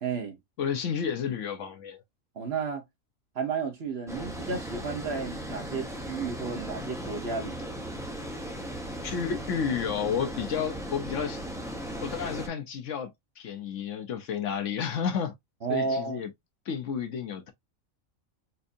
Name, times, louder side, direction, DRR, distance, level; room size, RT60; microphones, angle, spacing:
voice 1, 0.0-0.4 2.4-2.8 3.3-7.7 15.6-16.2, right 5 dB, 50° right, 1.2 m, -32 dB
voice 2, 0.6-2.0 8.5-8.6 9.0-11.4 12.0-15.3 15.7-16.3 16.7-17.5, left 7 dB, 65° left, 0.9 m, -31 dB
Water, 4.1-12.5, equal, 5° right, 0.5 m, -37 dB
4.3 x 2.7 x 2.5 m
omnidirectional pair, 1.5 m